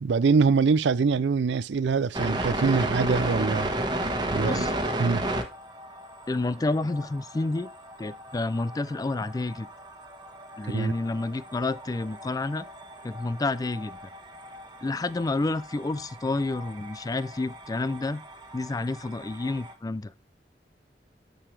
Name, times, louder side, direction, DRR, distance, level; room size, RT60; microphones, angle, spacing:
voice 1, 0.0-3.7 4.3-4.6 5.0-5.2 10.7-10.9, right 5 dB, 80° right, 0.4 m, -24 dB
sound 1, 2.1-19.7, right 1 dB, 25° right, 1.3 m, -34 dB
voice 2, 4.4-4.7 6.3-7.7 8.0-9.7 10.6-12.7 13.0-14.0 14.8-18.2 18.5-20.1, left 2 dB, 20° left, 0.3 m, -29 dB
9.0 x 6.8 x 3.2 m
head